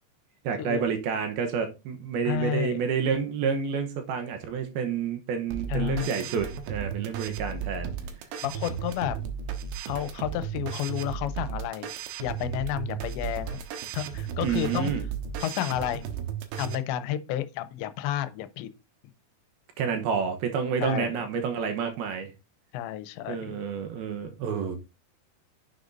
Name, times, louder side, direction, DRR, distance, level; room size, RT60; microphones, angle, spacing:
voice 1, 0.4-8.0 14.4-15.0 19.8-22.3 23.3-24.8, right 6 dB, 70° right, 2.7 m, -29 dB
voice 2, 2.3-2.8 5.7-6.1 8.4-9.2 9.9-11.9 12.2-13.6 13.9-15.0 15.4-16.0 16.6-18.7 20.8-21.3 22.7-23.6, left 12 dB, 90° left, 3.0 m, -31 dB
sound 1, 5.5-16.8, right 8 dB, 90° right, 3.5 m, -35 dB
10.0 x 8.0 x 2.6 m
omnidirectional pair, 5.0 m